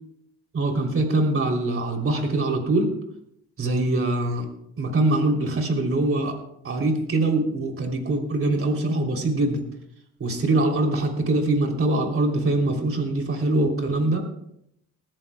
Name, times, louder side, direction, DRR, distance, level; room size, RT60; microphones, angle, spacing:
voice 1, 0.5-2.9 3.6-4.5 4.8-6.3 6.6-9.6 10.2-14.3, right 2 dB, 45° right, 2 dB, 3.4 m, -23 dB
20.5 x 14.5 x 2.3 m, 0.76 s
cardioid pair, 90°, 30 cm